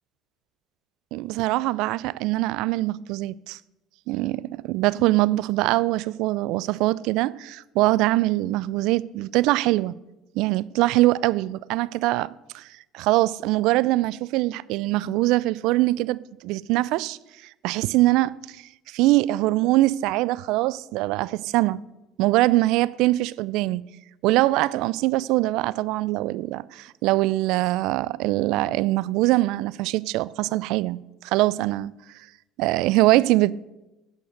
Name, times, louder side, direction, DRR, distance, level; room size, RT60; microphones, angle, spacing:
voice 1, 1.1-3.6 4.1-9.9 10.4-12.6 12.9-16.2 16.4-17.2 17.6-21.8 22.2-23.8 24.2-31.0 31.2-31.9 32.6-33.5, right 18 dB, 70° right, 0.4 m, -23 dB
13.0 x 8.4 x 6.6 m
hypercardioid pair, 70°, 0 cm